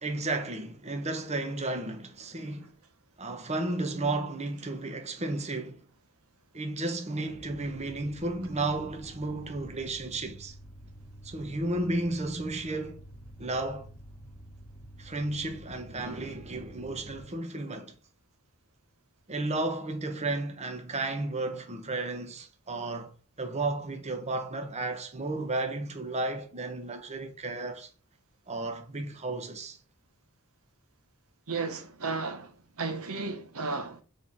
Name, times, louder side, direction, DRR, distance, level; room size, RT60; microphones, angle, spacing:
voice 1, 0.0-2.7 3.2-5.8 6.5-10.5 11.2-13.0 13.4-13.9 15.0-18.0 19.3-23.1 23.4-27.9 28.5-29.8, right 2 dB, 30° right, 1.0 m, -33 dB
sound 1, 7.3-17.3, right 1 dB, 15° left, 1.2 m, -49 dB
voice 2, 31.5-32.5 32.8-34.0, right 4 dB, 75° right, 1.1 m, -33 dB
5.4 x 4.4 x 5.4 m
head